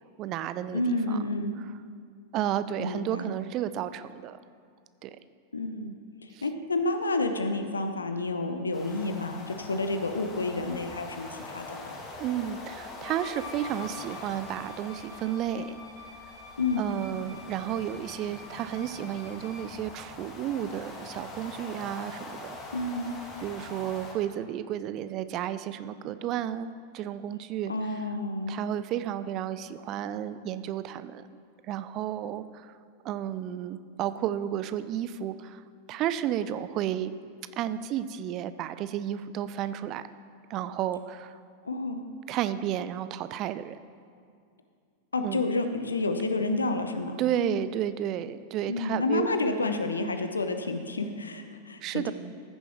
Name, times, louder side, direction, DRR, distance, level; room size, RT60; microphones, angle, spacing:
voice 1, 0.2-1.2 2.3-4.4 5.0-5.2 6.3-6.4 12.2-15.8 16.8-22.6 23.4-27.7 28.5-31.3 31.7-32.7 33.0-35.6 35.9-37.1 37.6-40.0 40.5-41.4 42.3-43.8 45.2-45.5 47.2-49.3 51.8-52.1, right 11 dB, 35° right, 13 dB, 0.4 m, -32 dB
voice 2, 0.7-1.6 2.8-3.3 5.5-5.9 6.2-11.9 16.6-16.9 22.7-23.1 27.7-28.6 41.6-42.0 45.1-47.2 48.7-52.1, left 2 dB, 75° left, 7 dB, 0.7 m, -30 dB
sound 1, 8.7-24.1, left 2 dB, 25° left, 1.5 m, -43 dB
Wind instrument woodwind instrument, 13.0-19.8, left 4 dB, 50° left, 2.5 m, -47 dB
14.5 x 6.9 x 3.1 m, 2.2 s
figure-of-eight pair, 90°, 0 cm